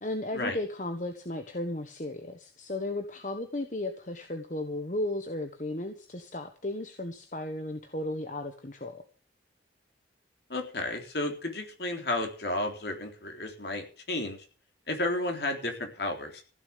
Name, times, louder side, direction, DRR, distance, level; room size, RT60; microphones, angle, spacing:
voice 1, 0.0-9.0, left 1 dB, 40° left, 6 dB, 1.4 m, -35 dB
voice 2, 10.5-14.4 14.9-16.4, left 2 dB, 65° left, 4 dB, 3.8 m, -32 dB
15.5 x 7.1 x 8.6 m, 0.38 s
head